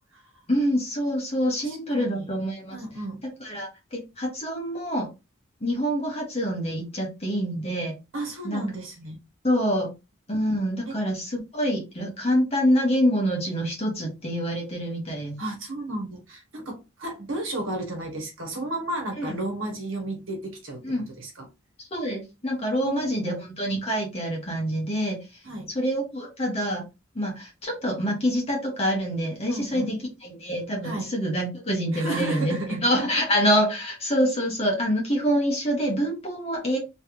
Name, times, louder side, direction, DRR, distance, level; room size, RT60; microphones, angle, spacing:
voice 1, 0.5-2.8 3.4-5.1 5.6-8.0 8.4-8.6 9.4-9.9 10.3-15.4 19.2-19.4 20.8-21.1 21.9-25.2 25.7-26.8 27.1-36.8, equal, 30° left, 1.4 m, -26 dB
voice 2, 1.6-2.3 2.7-3.2 8.1-9.2 9.5-9.6 10.9-11.0 15.4-20.8 21.2-21.5 22.8-23.4 25.4-25.7 29.5-29.9 30.8-31.1 31.9-32.8, right 2 dB, 70° right, 1.3 m, -33 dB
3.3 x 3.2 x 3.0 m
head